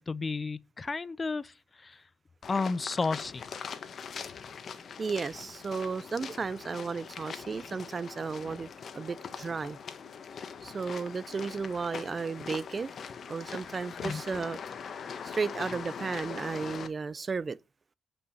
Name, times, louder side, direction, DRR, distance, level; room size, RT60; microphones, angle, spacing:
voice 1, 0.1-2.0 2.5-3.4 14.0-14.2, left 4 dB, 30° left, 0.5 m, -32 dB
sound 1, 2.4-16.9, left 6 dB, 50° left, 1.3 m, -42 dB
voice 2, 5.0-9.8 10.6-12.9 13.3-14.6 15.2-17.6, right 5 dB, 35° right, 0.7 m, -34 dB
8.6 x 5.4 x 5.7 m
cardioid pair, 90°, 0 cm